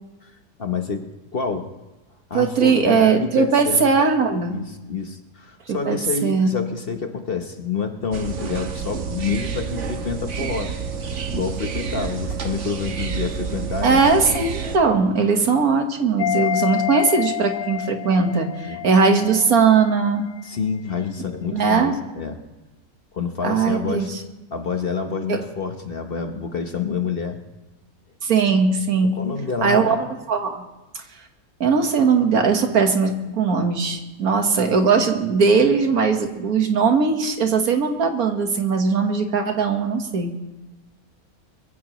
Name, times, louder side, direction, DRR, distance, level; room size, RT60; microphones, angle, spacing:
voice 1, 0.6-1.7 2.3-3.9 4.5-10.7 11.3-14.0 18.7-18.8 20.4-22.4 23.1-24.1 24.5-27.4 28.5-28.6 29.0-30.0, left 5 dB, 45° left, 6 dB, 1.1 m, -28 dB
voice 2, 2.3-4.6 5.9-6.5 13.8-20.3 21.5-21.9 23.4-24.1 25.3-25.4 28.2-29.2 29.6-30.0 30.3-30.6 31.6-40.3, right 5 dB, 75° right, 5 dB, 1.8 m, -19 dB
sound 1, 8.1-14.8, right 6 dB, 55° right, 1.3 m, -29 dB
sound 2, 16.2-20.1 20.4-20.5, left 14 dB, 70° left, 1.2 m, -28 dB
23.0 x 15.5 x 3.1 m, 1.1 s
omnidirectional pair, 1.6 m